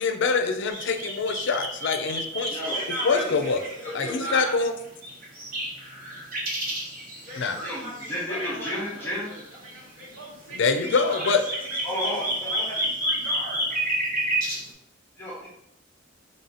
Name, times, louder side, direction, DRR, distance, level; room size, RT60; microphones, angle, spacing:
voice 1, 0.0-2.6 3.0-3.6 3.9-4.7 7.4-7.6 10.6-11.4, left 4 dB, 65° left, 7 dB, 0.4 m, -24 dB
sound 1, 0.7-4.1 4.4-4.5 5.0-8.1 8.4-8.7 9.3-9.6 10.1-10.2 10.6-14.7, right 1 dB, 45° right, 1.2 m, -30 dB
voice 2, 2.7-4.6 7.2-10.6 11.1-13.8, right 1 dB, 85° right, -5 dB, 1.4 m, -38 dB
voice 3, 3.8-4.3 7.6-9.3 10.8-10.9 11.8-12.8 15.2-15.5, left 1 dB, 10° left, -7 dB, 0.8 m, -33 dB
3.3 x 2.6 x 4.0 m, 0.79 s
head